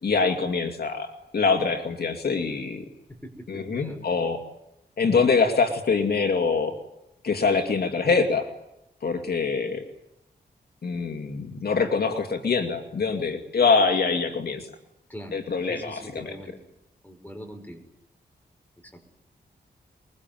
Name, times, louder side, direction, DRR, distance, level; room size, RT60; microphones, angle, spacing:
voice 1, 0.0-2.8 3.5-4.4 5.0-6.7 7.2-8.5 9.0-9.8 10.8-14.7 15.3-16.4, left 4 dB, 65° left, 5 dB, 2.5 m, -24 dB
voice 2, 3.2-4.0 15.1-16.5 17.0-17.8 18.8-19.0, equal, 10° left, 5 dB, 6.0 m, -42 dB
24.0 x 22.5 x 9.3 m, 0.86 s
wide cardioid pair, 100°, 18 cm